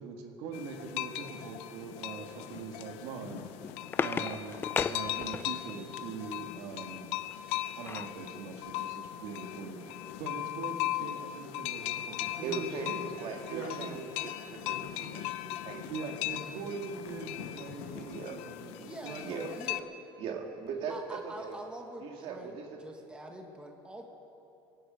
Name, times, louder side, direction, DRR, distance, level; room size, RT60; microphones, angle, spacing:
voice 1, 0.0-3.5 4.0-4.6 4.9-7.0 7.8-13.1 13.5-14.0 15.9-19.6, right 5 dB, 75° right, 3 dB, 1.8 m, -42 dB
sound 1, 0.5-19.8, left 14 dB, 75° left, 0.6 m, -38 dB
sound 2, 3.3-5.8 7.3-8.2 8.7-8.8 9.1-9.3, left 5 dB, 20° left, 0.4 m, -35 dB
voice 2, 12.4-16.2 17.9-18.4 19.2-19.5 20.2-21.5 22.0-22.7, right 5 dB, 55° right, 2 dB, 2.1 m, -40 dB
voice 3, 18.8-19.9 20.9-22.5 22.8-24.1, right 1 dB, 10° right, 2 dB, 1.5 m, -45 dB
25.0 x 11.0 x 5.2 m, 3.0 s
cardioid pair, 130°, 11 cm